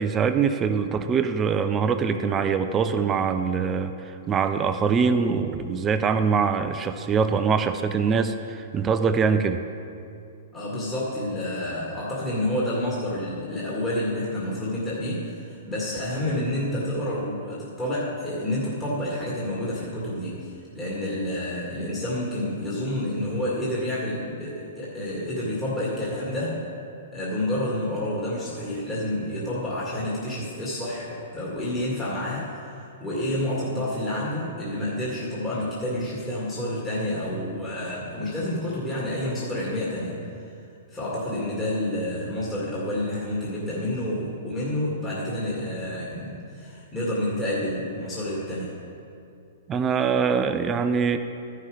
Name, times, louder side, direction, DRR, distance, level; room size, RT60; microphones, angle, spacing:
voice 1, 0.0-9.6 49.7-51.2, right 6 dB, 20° right, 9 dB, 0.5 m, -23 dB
voice 2, 10.5-26.7 27.1-40.2 40.9-48.8, left 1 dB, 15° left, -7 dB, 2.1 m, -29 dB
13.5 x 5.7 x 4.9 m, 2.5 s
hypercardioid pair, 120°, 0 cm